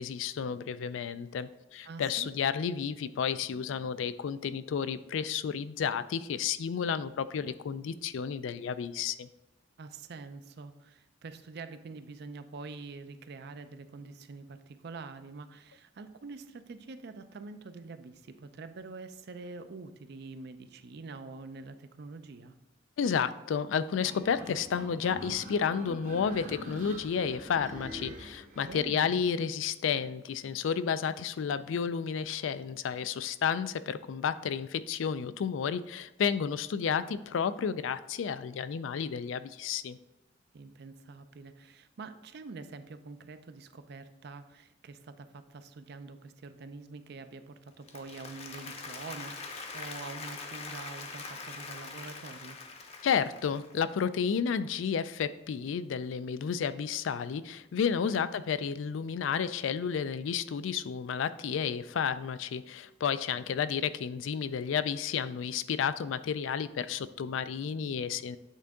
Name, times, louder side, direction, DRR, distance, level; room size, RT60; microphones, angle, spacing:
voice 1, 0.0-9.3 23.0-40.0 53.0-68.4, left 7 dB, 90° left, 14 dB, 0.4 m, -31 dB
voice 2, 1.9-2.3 9.8-22.5 28.6-29.1 40.5-52.6 58.1-58.2, right 3 dB, 60° right, 10 dB, 0.4 m, -45 dB
sound 1, 24.0-28.8, equal, 40° right, 0.9 m, -44 dB
Applause, 47.7-53.9, left 4 dB, 35° left, 0.6 m, -43 dB
8.2 x 3.7 x 3.5 m, 0.97 s
head